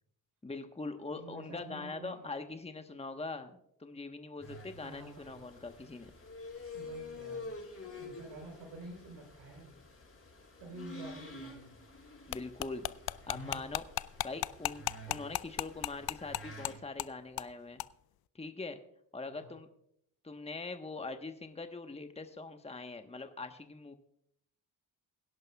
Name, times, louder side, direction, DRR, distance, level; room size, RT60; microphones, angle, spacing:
voice 1, 0.4-3.5 3.8-6.1 12.3-12.9 13.3-13.9 14.2-17.8 18.3-18.8 19.1-19.7 20.2-24.0, left 3 dB, 15° left, 7 dB, 1.2 m, -42 dB
voice 2, 1.1-2.3 4.8-5.5 6.7-9.7 10.6-11.8 19.2-19.6, right 2 dB, 80° right, 1 dB, 3.9 m, -49 dB
sound 1, 4.4-16.8, left 2 dB, 30° left, 6.2 m, -48 dB
sound 2, 12.3-16.7 17.0-17.1 17.4-17.5 17.8-17.9, left 14 dB, 50° left, 0.5 m, -34 dB
22.0 x 11.0 x 2.3 m, 0.74 s
supercardioid pair, 50°, 48 cm